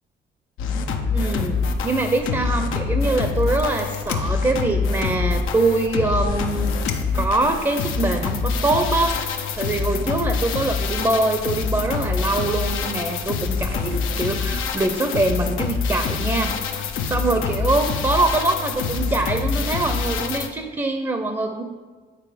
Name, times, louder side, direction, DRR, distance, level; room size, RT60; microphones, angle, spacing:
sound 1, 0.6-20.5, left 5 dB, 90° left, 0.7 m, -25 dB
voice 1, 1.1-1.6 1.8-6.7 7.1-21.6, right 2 dB, 20° right, 6 dB, 0.6 m, -24 dB
sound 2, 2.7-2.8 3.0-4.8 5.3-5.4 6.1-7.3 8.5-8.6 9.1-10.1, left 6 dB, 55° left, 1.1 m, -39 dB
9.0 x 4.4 x 5.0 m, 1.4 s
cardioid pair, 90°, 20 cm